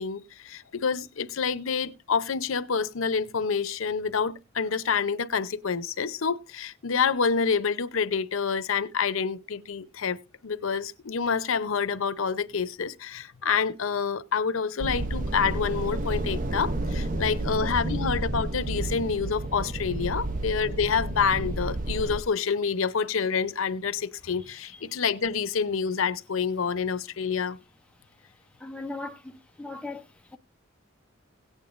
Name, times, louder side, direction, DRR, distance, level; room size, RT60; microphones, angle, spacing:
voice 1, 0.0-27.6, left 6 dB, 85° left, 0.7 m, -28 dB
sound 1, 14.8-22.2, right 2 dB, 40° right, 0.7 m, -30 dB
voice 2, 28.6-30.1, left 2 dB, 5° left, 0.6 m, -38 dB
17.5 x 8.9 x 2.5 m
head